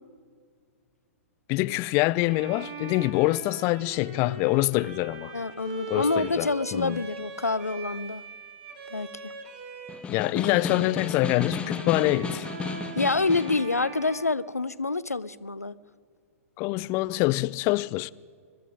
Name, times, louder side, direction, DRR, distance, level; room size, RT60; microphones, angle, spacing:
voice 1, 1.5-5.3 5.9-7.0 10.1-12.5 16.6-18.1, left 20 dB, 30° left, 0.3 m, -25 dB
Bowed string instrument, 2.2-10.1 10.4-15.1, right 4 dB, 45° right, 2.0 m, -41 dB
voice 2, 5.3-8.2 8.9-9.3 13.0-15.8, left 3 dB, 90° left, 0.5 m, -27 dB
Snare drum, 9.9-13.7, left 4 dB, 15° left, 0.9 m, -33 dB
22.5 x 12.0 x 5.2 m
figure-of-eight pair, 110°, 8 cm